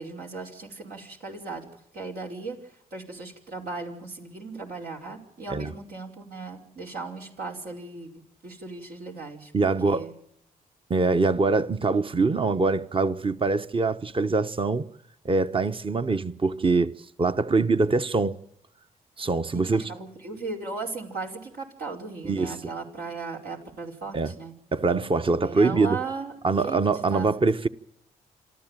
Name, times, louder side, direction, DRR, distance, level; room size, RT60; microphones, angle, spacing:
voice 1, 0.0-10.1 19.5-24.5 25.4-26.3 26.6-27.3, right 4 dB, 75° right, 5.1 m, -37 dB
voice 2, 9.5-10.0 10.9-14.9 15.2-16.9 17.2-18.4 19.2-19.8 22.2-22.6 24.1-24.3 24.7-26.0 26.4-27.7, right 3 dB, 35° right, 1.2 m, -23 dB
27.0 x 14.0 x 9.1 m
cardioid pair, 65°, 16 cm